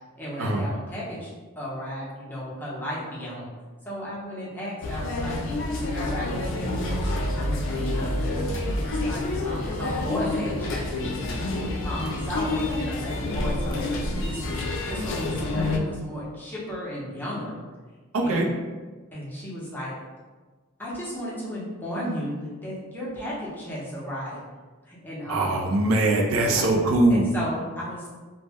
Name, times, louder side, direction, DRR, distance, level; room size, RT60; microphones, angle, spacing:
voice 1, 0.1-1.3 1.6-3.5 3.9-5.4 5.8-8.2 8.5-11.2 11.8-13.9 14.2-17.5 18.2-18.5 19.1-20.0 20.8-24.4 24.9-25.7 26.3-26.7 27.1-28.1, equal, 10° left, -8 dB, 0.6 m, -34 dB
sound 1, 4.8-15.8, left 2 dB, 60° left, 0.4 m, -28 dB
voice 2, 18.1-18.5 25.3-27.3, right 2 dB, 70° right, 1 dB, 0.4 m, -22 dB
2.1 x 2.0 x 3.4 m, 1.3 s
head